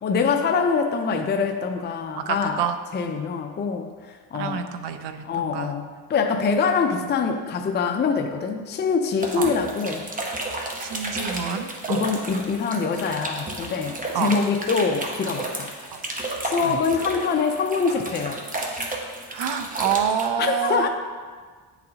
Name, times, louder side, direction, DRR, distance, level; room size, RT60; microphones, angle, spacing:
voice 1, 0.0-2.6 2.9-3.9 4.3-4.6 5.2-10.1 11.9-15.7 16.4-18.4 20.4-20.9, left 5 dB, 25° left, 4 dB, 0.4 m, -24 dB
voice 2, 2.1-2.7 3.3-3.4 4.3-5.7 9.4-9.5 10.8-12.0 14.1-14.3 15.9-16.0 16.6-16.8 19.3-20.9, right 8 dB, 75° right, 8 dB, 0.6 m, -27 dB
sound 1, 9.2-20.3, right 2 dB, 20° right, 0.9 m, -32 dB
9.5 x 4.0 x 2.8 m, 1.5 s
cardioid pair, 95°, 41 cm